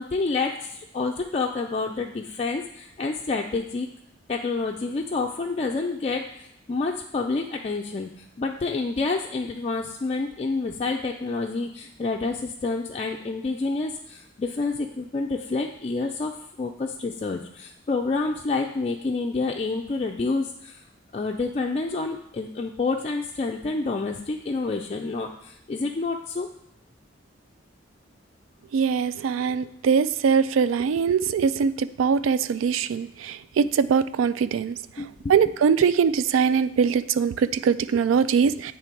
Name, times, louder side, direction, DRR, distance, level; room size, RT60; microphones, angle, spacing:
voice 1, 0.0-3.9 4.3-8.1 8.4-20.8 21.1-26.5 35.0-35.4, left 3 dB, 30° left, 0 dB, 0.3 m, -28 dB
voice 2, 28.7-34.8 35.3-38.7, right 6 dB, 90° right, 14 dB, 0.3 m, -22 dB
8.4 x 3.2 x 4.5 m, 0.77 s
head